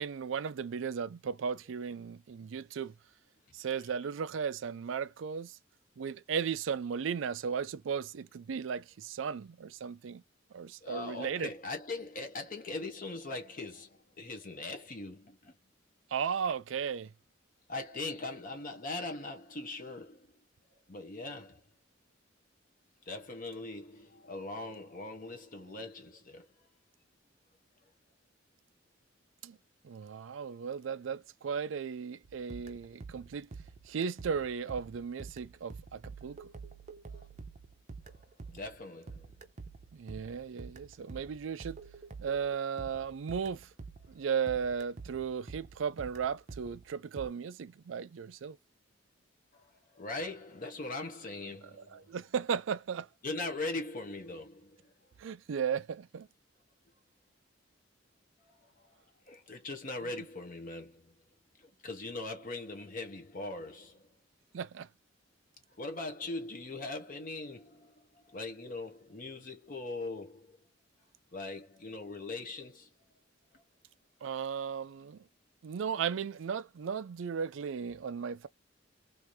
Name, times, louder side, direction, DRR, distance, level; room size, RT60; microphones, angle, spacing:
voice 1, 0.0-2.9 3.5-5.6 6.0-10.2 10.5-11.5 16.1-17.1 29.4-29.6 29.8-33.5 33.9-36.5 39.9-41.8 42.2-43.7 44.1-48.6 51.8-53.1 55.2-56.3 64.5-64.9 74.2-75.2 75.6-78.5, right 6 dB, 80° right, 0.4 m, -36 dB
voice 2, 10.8-15.5 17.7-20.3 20.9-21.6 23.1-26.5 37.1-37.3 38.0-38.2 38.5-39.3 49.5-52.1 53.2-54.9 58.6-58.9 59.3-61.1 61.6-64.0 65.8-70.5 71.3-72.9 73.5-73.6, left 2 dB, 45° left, 0.9 m, -41 dB
sound 1, 32.2-44.2 44.5-47.3, right 4 dB, 40° right, 0.6 m, -48 dB
3.3 x 2.6 x 2.8 m
head